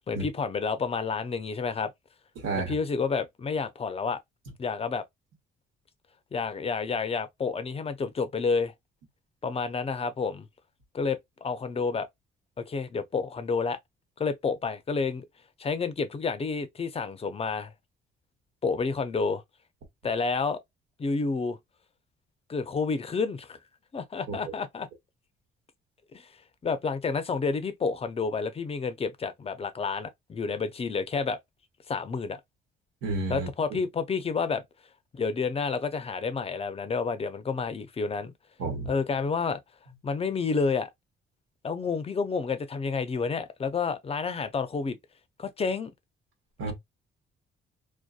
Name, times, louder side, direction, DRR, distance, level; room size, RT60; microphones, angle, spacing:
voice 1, 0.0-1.9 2.7-4.2 4.6-5.0 6.3-8.7 9.4-10.5 10.9-12.1 12.6-13.8 14.2-15.3 15.6-17.7 18.6-19.4 20.0-20.6 21.0-21.6 22.5-23.6 23.9-24.9 26.1-26.3 26.6-31.4 31.9-32.4 33.3-34.6 35.1-38.3 38.9-39.6 40.0-40.9 41.6-45.0 45.4-45.9, left 4 dB, 30° left, 0.5 m, -29 dB
voice 2, 2.4-2.7 24.3-24.4 33.0-33.8 38.6-39.0 46.6-46.7, right 3 dB, 85° right, 1.1 m, -31 dB
2.6 x 2.1 x 2.3 m
cardioid pair, 90°, 20 cm